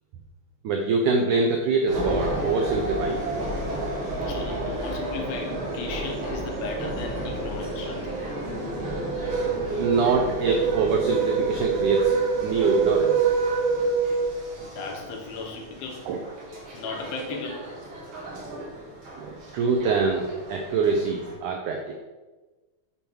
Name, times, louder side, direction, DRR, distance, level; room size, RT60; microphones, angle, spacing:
voice 1, 0.6-3.2 9.8-12.2 12.4-13.3 16.1-16.2 19.2-22.0, right 4 dB, 85° right, 3 dB, 1.7 m, -24 dB
sound 1, 1.9-21.3, right 4 dB, 50° right, 1.8 m, -29 dB
voice 2, 4.3-8.2 14.6-16.1 16.7-17.7, left 4 dB, 75° left, 1 dB, 2.8 m, -36 dB
7.1 x 4.5 x 5.3 m, 1.2 s
omnidirectional pair, 4.4 m